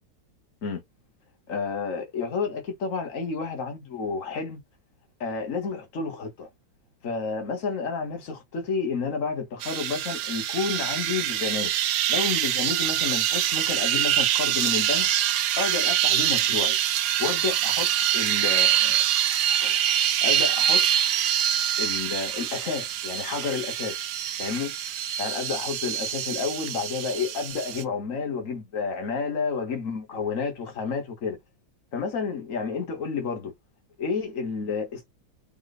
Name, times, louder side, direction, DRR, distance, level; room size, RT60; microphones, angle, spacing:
voice 1, 1.5-4.6 5.2-6.5 7.0-11.7 12.1-15.1 15.6-16.8 17.2-19.0 19.6-19.8 20.2-20.8 21.8-24.0 24.4-24.7 25.2-31.4 31.9-33.5 34.0-35.1, left 5 dB, 45° left, 1.6 m, -30 dB
sound 1, 9.6-27.8, right 11 dB, 70° right, 1.0 m, -25 dB
4.0 x 2.4 x 4.2 m
omnidirectional pair, 2.1 m